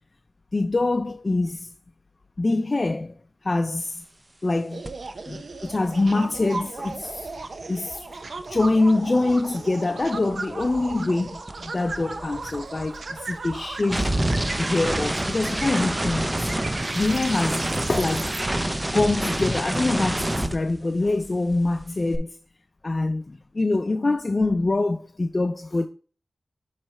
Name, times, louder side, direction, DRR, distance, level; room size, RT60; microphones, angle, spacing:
voice 1, 0.5-1.7 2.4-3.1 3.4-4.0 4.4-4.8 5.3-7.2 7.7-8.0 8.5-14.2 14.5-16.5 16.9-18.4 18.8-22.4 22.8-25.9, left 2 dB, 40° left, 0.4 m, -24 dB
sound 1, 4.7-18.4, right 3 dB, 70° right, 0.7 m, -36 dB
sound 2, 4.8-5.1 5.3-9.7 10.0-21.3 21.5-22.2, right 1 dB, 20° right, 0.6 m, -29 dB
7.9 x 3.2 x 4.3 m
wide cardioid pair, 65°, 0 cm